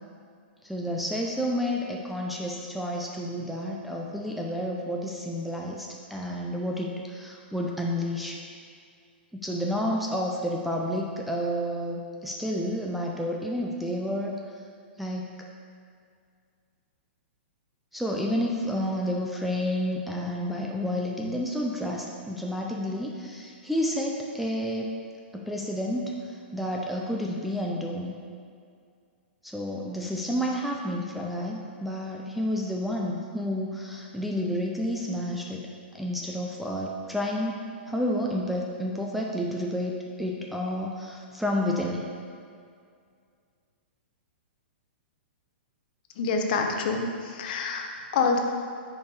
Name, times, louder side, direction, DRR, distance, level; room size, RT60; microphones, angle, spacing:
voice 1, 0.6-8.4 9.3-14.4 15.0-15.3 17.9-24.9 25.3-26.1 26.5-28.2 29.4-35.7 35.9-37.6 37.9-42.1, equal, ahead, -2 dB, 0.4 m, -30 dB
voice 2, 46.2-48.4, left 4 dB, 50° left, 3 dB, 0.7 m, -27 dB
5.6 x 4.7 x 4.6 m, 2.2 s
hypercardioid pair, 150°, 6 cm